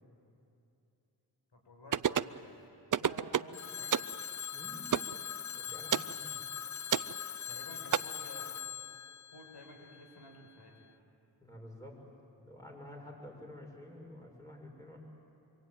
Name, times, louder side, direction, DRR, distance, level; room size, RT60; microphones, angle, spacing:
voice 1, 1.5-2.6 3.0-3.9 7.5-8.5 9.3-10.7, left 1 dB, 80° left, 1 dB, 5.3 m, -52 dB
sound 1, 1.9-2.4 2.9-3.5 3.9-4.1 4.9-5.1 5.9-6.1 6.9-7.1 7.9-8.0, right 8 dB, 50° right, 0.6 m, -29 dB
Telephone, 3.5-10.4, left 9 dB, 45° left, 0.6 m, -42 dB
voice 2, 4.5-4.9 5.6-6.5 11.4-12.0 12.4-15.0, left 1 dB, 10° left, 0 dB, 6.9 m, -50 dB
25.5 x 25.0 x 9.2 m, 2.8 s
cardioid pair, 55°, 41 cm